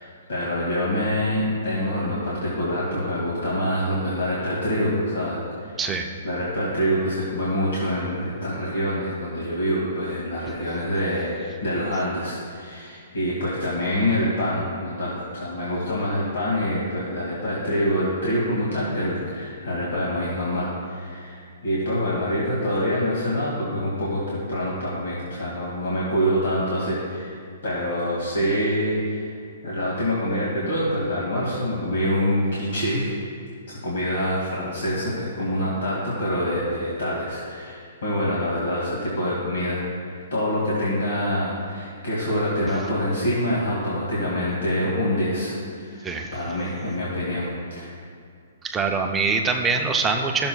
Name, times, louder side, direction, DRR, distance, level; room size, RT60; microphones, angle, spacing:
voice 1, 0.0-5.8 6.2-29.4 29.6-33.1 33.7-47.9, equal, 85° left, -6 dB, 2.1 m, -26 dB
voice 2, 48.6-50.5, right 4 dB, 10° right, 2 dB, 0.4 m, -23 dB
14.0 x 6.8 x 2.3 m, 2.3 s
hypercardioid pair, 170°, 0 cm